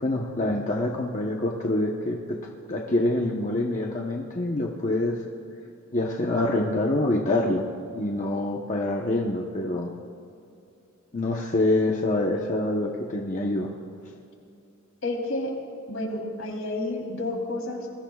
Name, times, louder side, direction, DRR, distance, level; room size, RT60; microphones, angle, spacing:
voice 1, 0.0-2.4 2.7-5.2 5.9-7.7 7.9-9.9 11.1-13.7, left 2 dB, 35° left, -1 dB, 1.0 m, -26 dB
voice 2, 15.0-15.5 15.9-17.9, left 2 dB, 75° left, 0 dB, 3.4 m, -30 dB
28.0 x 21.0 x 2.4 m, 2.6 s
head